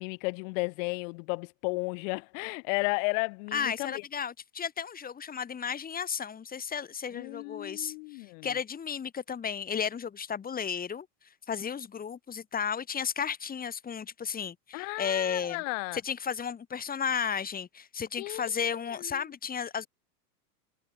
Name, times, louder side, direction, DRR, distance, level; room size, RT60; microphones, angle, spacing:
voice 1, 0.0-3.9 7.1-8.5 14.7-16.0 18.2-18.4 19.0-19.2, left 32 dB, 50° left, 5.8 m, -33 dB
voice 2, 3.5-11.1 11.5-15.6 15.9-19.9, left 7 dB, 20° left, 3.9 m, -33 dB
hypercardioid pair, 130°, 48 cm